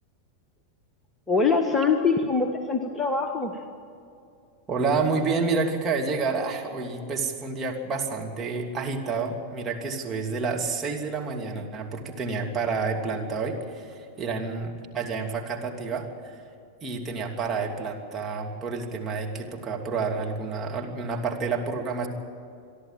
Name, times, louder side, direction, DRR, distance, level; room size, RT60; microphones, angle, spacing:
voice 1, 1.3-3.6, left 4 dB, 15° left, 5 dB, 1.4 m, -23 dB
voice 2, 4.7-16.4 16.8-22.1, right 4 dB, 20° right, -1 dB, 3.0 m, -29 dB
28.0 x 11.0 x 9.1 m, 2.6 s
figure-of-eight pair, 90°, 0 cm